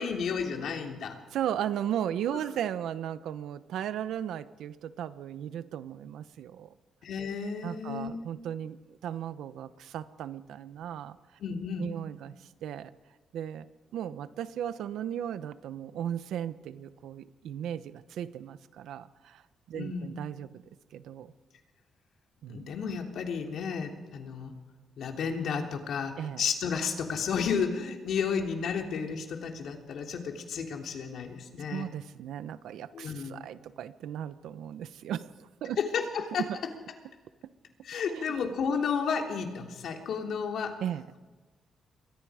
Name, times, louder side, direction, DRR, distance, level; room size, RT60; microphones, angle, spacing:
voice 1, 0.0-1.2 7.0-8.2 11.4-11.9 19.7-20.1 22.5-24.5 25.0-31.9 32.9-33.5 35.8-36.4 37.8-40.8, left 6 dB, 65° left, 3 dB, 3.2 m, -32 dB
voice 2, 1.3-6.7 7.6-11.4 11.8-12.9 13.3-13.7 13.9-19.4 19.7-20.5 20.9-21.3 22.4-22.7 26.2-26.5 31.7-35.8 36.4-36.5 37.9-38.3 40.8-41.1, right 10 dB, 90° right, 13 dB, 1.0 m, -36 dB
28.5 x 23.5 x 5.1 m, 1.3 s
cardioid pair, 140°, 0 cm